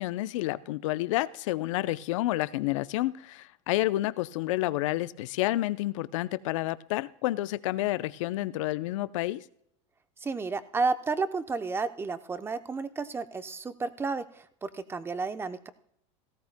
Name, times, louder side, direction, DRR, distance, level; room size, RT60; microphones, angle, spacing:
voice 1, 0.0-9.4, left 16 dB, 80° left, 0.6 m, -29 dB
voice 2, 10.2-15.7, right 4 dB, 15° right, 0.8 m, -32 dB
17.5 x 15.0 x 2.2 m
supercardioid pair, 120°, 16 cm